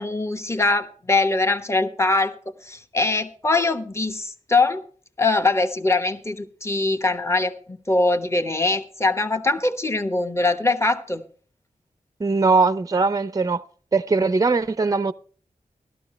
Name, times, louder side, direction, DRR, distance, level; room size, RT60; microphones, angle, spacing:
voice 1, 0.0-2.3 2.6-4.8 5.2-11.2, left 3 dB, 20° left, 1.1 m, -22 dB
voice 2, 12.2-13.6 13.9-15.1, right 4 dB, 25° right, 0.5 m, -20 dB
14.5 x 12.5 x 3.2 m
wide cardioid pair, 90°, 14 cm